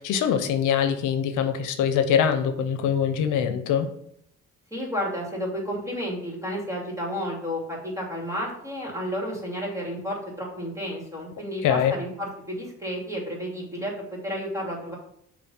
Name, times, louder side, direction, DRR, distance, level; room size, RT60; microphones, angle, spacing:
voice 1, 0.0-3.9 11.6-11.9, left 8 dB, 85° left, 8 dB, 0.7 m, -23 dB
voice 2, 4.7-15.0, equal, 10° right, -2 dB, 2.7 m, -31 dB
6.8 x 3.2 x 5.6 m, 0.71 s
cardioid pair, 90°, 30 cm